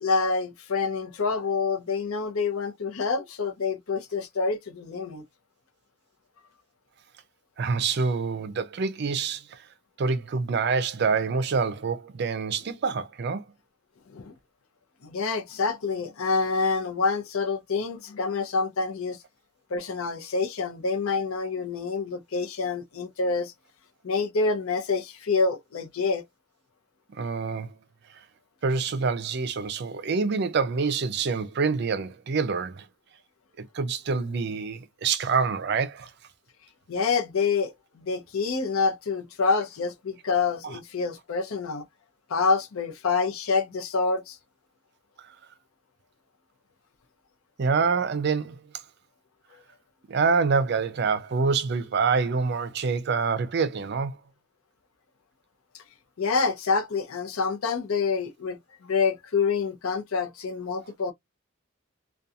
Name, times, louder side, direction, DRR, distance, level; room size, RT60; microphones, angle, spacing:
voice 1, 0.0-5.2 14.1-14.3 15.0-19.2 19.7-23.5 24.0-26.2 36.9-41.8 42.3-44.4 55.7-55.8 56.2-61.1, left 4 dB, 85° left, 0.6 m, -27 dB
voice 2, 7.6-9.6 10.0-13.4 27.2-27.7 28.6-32.9 33.6-36.1 40.6-40.8 47.6-48.6 50.1-54.2, right 5 dB, 50° right, 0.4 m, -26 dB
2.4 x 2.3 x 2.7 m
head